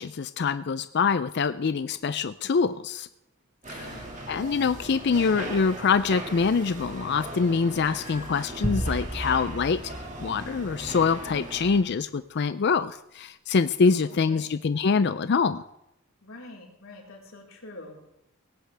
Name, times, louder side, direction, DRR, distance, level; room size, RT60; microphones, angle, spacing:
voice 1, 0.0-3.1 3.7-3.9 4.3-9.8 10.2-15.6, left 5 dB, 50° left, 12 dB, 0.4 m, -25 dB
sound 1, 3.6-11.8, right 1 dB, 35° right, 2.1 m, -39 dB
voice 2, 3.7-4.3 13.8-14.0 14.2-14.5 16.2-18.0, left 2 dB, 80° left, -2 dB, 4.3 m, -45 dB
sound 2, 8.6-11.1, right 1 dB, 10° right, 0.8 m, -33 dB
18.0 x 17.0 x 3.4 m, 0.82 s
head